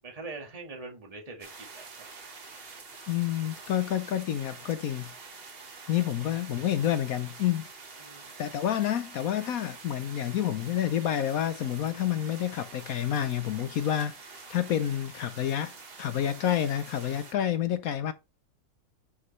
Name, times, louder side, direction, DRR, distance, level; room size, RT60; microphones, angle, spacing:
voice 1, 0.0-1.8 5.9-6.0 8.0-8.2, right 3 dB, 20° right, 1.7 m, -43 dB
sound 1, 1.4-17.3, right 4 dB, 35° right, 1.2 m, -47 dB
voice 2, 3.1-5.1 5.9-7.7 8.4-15.7 16.0-18.1, left 10 dB, 65° left, 0.9 m, -29 dB
8.3 x 4.9 x 3.1 m
omnidirectional pair, 2.0 m